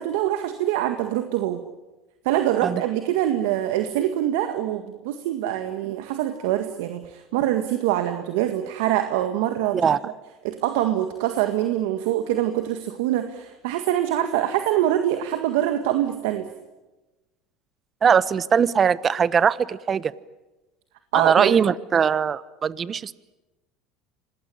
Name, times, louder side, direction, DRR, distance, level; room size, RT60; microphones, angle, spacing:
voice 1, 0.0-1.6 2.2-10.1 10.4-16.5 21.1-21.6, right 12 dB, 80° right, 8 dB, 1.8 m, -24 dB
voice 2, 18.0-20.1 21.1-23.1, right 7 dB, 35° right, 18 dB, 1.0 m, -21 dB
26.5 x 19.5 x 10.0 m, 1.1 s
supercardioid pair, 100°, 0 cm